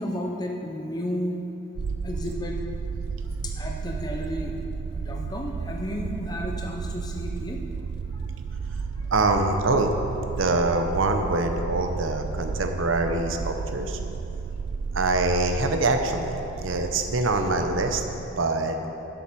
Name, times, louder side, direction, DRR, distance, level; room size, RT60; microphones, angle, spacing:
voice 1, 0.0-1.5 2.0-2.6 3.4-4.5 4.9-7.6 16.7-16.8 17.2-17.3, equal, 20° left, 1 dB, 0.6 m, -32 dB
sound 1, 1.8-18.3, right 5 dB, 60° right, 0.4 m, -33 dB
voice 2, 9.1-9.9 10.4-14.0 14.9-18.0 18.4-18.8, right 2 dB, 80° right, 5 dB, 0.8 m, -24 dB
8.5 x 7.2 x 6.1 m, 2.9 s
head